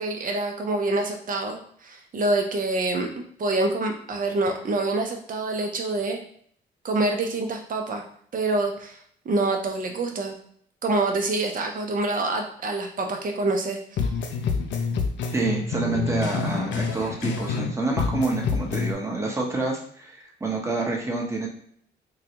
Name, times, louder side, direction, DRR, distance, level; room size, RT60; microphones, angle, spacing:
voice 1, 0.0-6.2 6.8-8.0 8.3-9.0 9.3-10.3 10.8-13.8, right 2 dB, 45° right, 3 dB, 0.7 m, -26 dB
sound 1, 14.0-17.7 18.0-18.9, left 4 dB, 65° left, 0.5 m, -27 dB
voice 2, 15.3-21.5, right 3 dB, 15° right, -1 dB, 1.0 m, -28 dB
3.8 x 2.3 x 2.9 m, 0.62 s
cardioid pair, 90°, 20 cm